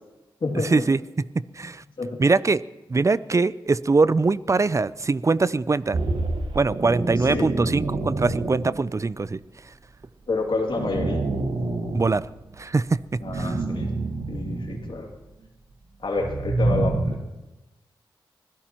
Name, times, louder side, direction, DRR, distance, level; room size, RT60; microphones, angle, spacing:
voice 1, 0.4-0.8 2.0-2.2 7.2-7.5 10.3-11.2 13.2-13.9 14.3-15.1 16.0-17.1, left 3 dB, 65° left, 2.5 m, -28 dB
voice 2, 1.3-1.8 2.2-2.6 2.9-6.0 6.5-9.4 11.9-12.3 12.6-13.5, right 3 dB, 35° right, 0.5 m, -22 dB
sound 1, 5.9-9.0 10.3-12.6 13.1-15.1 16.0-17.1, right 2 dB, 70° right, 1.6 m, -27 dB
25.5 x 16.5 x 3.0 m
cardioid pair, 50°, 9 cm